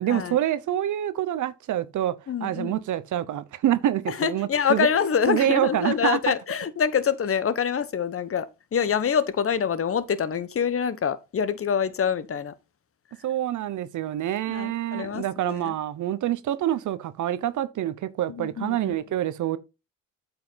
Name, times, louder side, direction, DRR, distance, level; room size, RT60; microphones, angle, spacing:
voice 1, 0.0-2.1 2.4-4.9 5.3-6.2 13.2-19.6, right 12 dB, 65° right, 1.0 m, -26 dB
voice 2, 2.3-2.8 4.1-12.5 14.5-15.7 18.3-19.0, left 7 dB, 45° left, 1.2 m, -26 dB
8.6 x 5.7 x 4.1 m
supercardioid pair, 70°, 32 cm